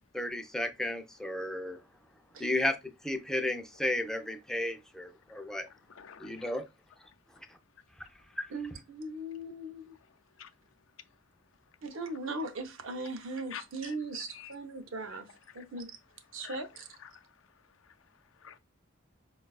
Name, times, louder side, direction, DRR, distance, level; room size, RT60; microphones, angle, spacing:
voice 1, 0.1-1.8 2.4-2.7 3.0-5.7 6.2-6.6 8.4-8.5, left 1 dB, 5° left, 0.4 m, -33 dB
voice 2, 5.7-6.6 10.4-10.5 13.5-14.0 14.3-14.5 15.1-15.2 15.5-15.7 16.4-16.6 17.0-17.3 17.8-18.0 18.4-18.6, left 8 dB, 75° left, 0.4 m, -48 dB
voice 3, 8.5-9.9 11.8-15.3 15.5-15.9 16.3-16.9, right 2 dB, 70° right, 0.7 m, -39 dB
4.6 x 2.3 x 2.3 m
head